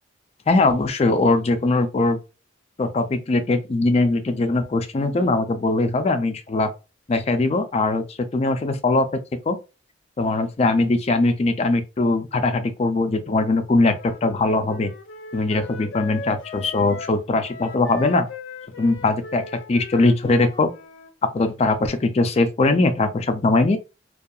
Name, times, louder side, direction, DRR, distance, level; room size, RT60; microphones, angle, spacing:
voice 1, 0.5-2.2 2.8-6.7 7.1-8.0 8.3-9.1 9.5-9.6 10.2-14.9 15.3-18.3 18.8-19.4 19.7-20.7 21.3-23.8, left 2 dB, 35° left, 0.3 m, -21 dB
Wind instrument woodwind instrument, 13.8-21.1, left 3 dB, 85° left, 0.5 m, -39 dB
2.7 x 2.3 x 2.3 m
head